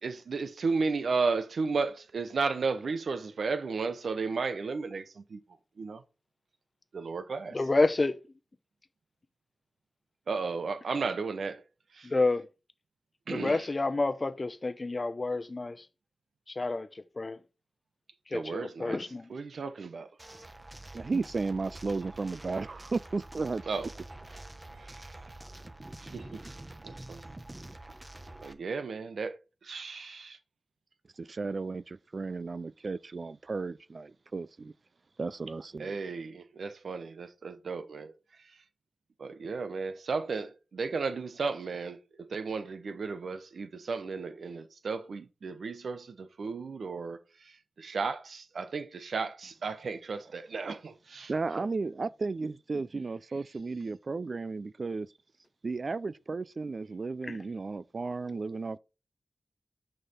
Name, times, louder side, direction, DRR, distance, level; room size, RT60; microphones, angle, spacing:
voice 1, 0.0-5.4 5.8-6.0 6.9-7.6 10.3-11.6 11.9-12.1 13.3-13.7 18.3-19.0 19.3-20.1 23.7-23.9 24.8-25.0 26.0-26.4 26.8-27.2 28.4-30.4 35.8-38.1 39.2-47.2 47.8-51.3, right 4 dB, 85° right, 0.8 m, -34 dB
voice 2, 7.5-8.2 12.0-12.5 13.3-15.8 16.5-16.9 17.2-17.4 18.3-19.3 57.2-57.4, left 3 dB, 50° left, 0.7 m, -29 dB
sound 1, 20.2-28.5, right 2 dB, 30° right, 1.1 m, -47 dB
voice 3, 20.9-23.6 31.2-34.7 35.2-36.0 51.3-55.1 55.6-58.8, right 3 dB, 60° right, 0.4 m, -34 dB
6.6 x 5.6 x 4.2 m
cardioid pair, 45°, 0 cm